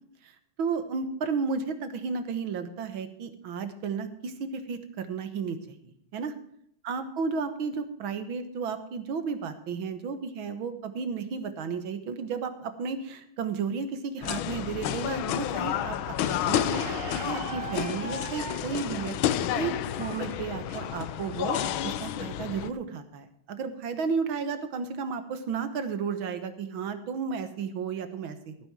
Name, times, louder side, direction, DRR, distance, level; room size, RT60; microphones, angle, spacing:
voice 1, 0.6-6.3 6.8-21.6 21.8-28.7, right 5 dB, 80° right, 9 dB, 2.1 m, -33 dB
sound 1, 14.2-22.7, left 11 dB, 90° left, 1.5 m, -30 dB
Squeak, 16.7-21.7, right 5 dB, 65° right, 2.0 m, -42 dB
15.0 x 9.4 x 4.8 m, 0.70 s
omnidirectional pair, 2.2 m